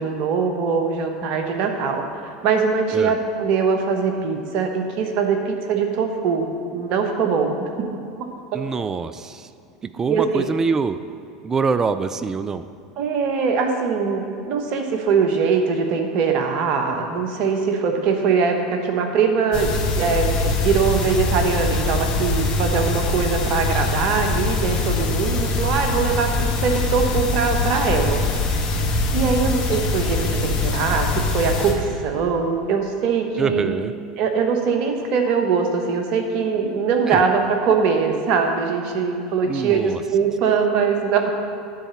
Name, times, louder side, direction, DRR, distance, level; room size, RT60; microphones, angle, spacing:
voice 1, 0.0-2.0 2.4-6.5 6.7-7.9 8.5-8.6 10.1-10.4 13.0-28.5 29.1-33.7 34.2-41.3, right 5 dB, 50° right, 4 dB, 1.0 m, -22 dB
voice 2, 8.5-9.5 9.9-11.0 11.4-12.6 33.4-33.9 37.1-37.2 39.5-40.0, right 5 dB, 20° right, 12 dB, 0.4 m, -24 dB
sound 1, 19.5-31.7, left 3 dB, 40° left, 1.4 m, -23 dB
10.5 x 4.2 x 7.0 m, 2.4 s
figure-of-eight pair, 80°, 2 cm